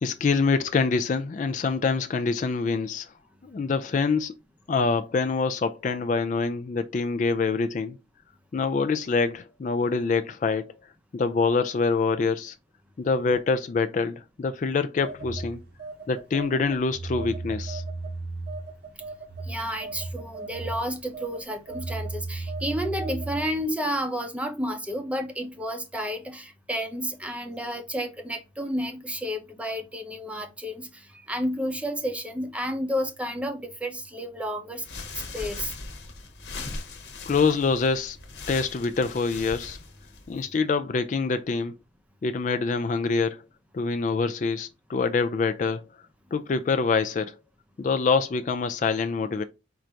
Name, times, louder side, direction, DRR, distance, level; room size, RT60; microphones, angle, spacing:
voice 1, 0.0-3.1 3.4-4.3 4.7-8.0 8.5-10.7 11.1-12.5 13.0-15.6 16.1-17.8 37.3-38.2 38.5-39.8 40.3-41.7 42.2-43.4 43.7-45.8 46.3-47.4 47.8-49.4, left 4 dB, 40° left, 0.3 m, -25 dB
Telephone, 15.0-23.6, right 3 dB, 55° right, 0.8 m, -35 dB
voice 2, 19.4-34.8 35.3-35.7, equal, 5° right, 0.6 m, -31 dB
sound 1, 34.8-40.5, left 3 dB, 65° left, 1.0 m, -39 dB
4.6 x 2.6 x 4.3 m
head